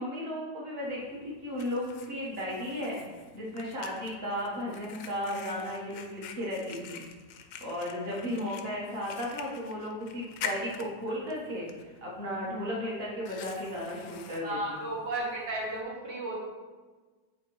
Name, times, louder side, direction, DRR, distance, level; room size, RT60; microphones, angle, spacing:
voice 1, 0.0-7.0 7.6-11.7 12.0-14.8, left 1 dB, 35° right, -5 dB, 1.7 m, -35 dB
Fire, 0.9-15.8, left 7 dB, 75° left, 1.2 m, -46 dB
voice 2, 14.4-16.4, right 1 dB, 70° right, -4 dB, 1.8 m, -34 dB
8.4 x 3.4 x 4.7 m, 1.3 s
omnidirectional pair, 2.0 m